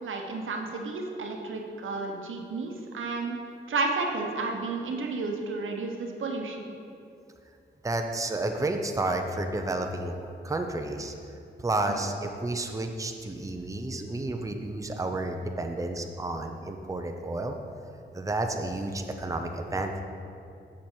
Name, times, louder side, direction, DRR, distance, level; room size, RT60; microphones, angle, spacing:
voice 1, 0.0-3.4 3.7-6.8 11.9-12.0, right 3 dB, 80° right, 2 dB, 0.9 m, -32 dB
voice 2, 7.8-10.1 10.4-11.1 11.6-17.5 18.1-20.0, right 2 dB, 15° right, 4 dB, 0.6 m, -31 dB
7.1 x 6.2 x 4.4 m, 2.5 s
cardioid pair, 60°, 20 cm